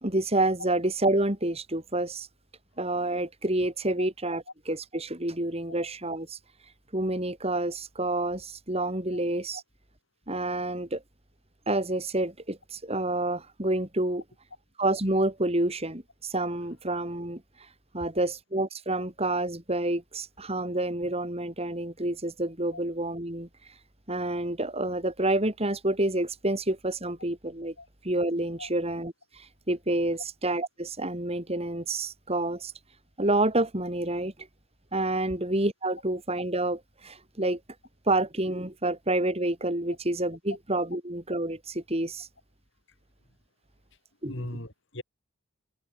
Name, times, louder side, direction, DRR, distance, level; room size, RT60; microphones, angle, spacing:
voice 1, 0.0-2.3 2.8-6.4 6.9-9.6 10.3-11.0 11.7-14.2 14.8-17.4 17.9-23.5 24.1-27.7 28.0-32.7 33.2-34.3 34.9-37.6 38.1-42.3 44.2-44.5, right 2 dB, 30° right, 3.6 m, -28 dB
voice 2, 44.3-45.0, left 1 dB, 60° left, 6.6 m, -39 dB
head